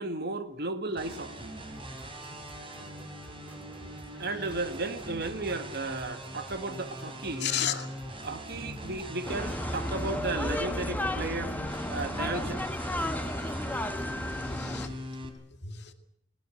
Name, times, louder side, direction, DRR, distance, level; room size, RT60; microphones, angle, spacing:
voice 1, 0.0-1.5 4.2-7.5 8.2-11.5 11.9-12.6, right 2 dB, 60° right, 10 dB, 1.8 m, -34 dB
sound 1, 1.0-15.3, right 1 dB, 30° right, 4.0 m, -42 dB
sound 2, 1.7-14.1, right 1 dB, 10° right, 4.3 m, -49 dB
voice 2, 4.1-4.5 7.4-7.9 13.9-14.0 14.4-15.0 15.6-15.9, left 9 dB, 60° left, 7 dB, 2.3 m, -34 dB
sound 3, 9.3-14.9, left 1 dB, 10° left, 1.2 m, -33 dB
20.0 x 18.5 x 9.2 m, 0.77 s
head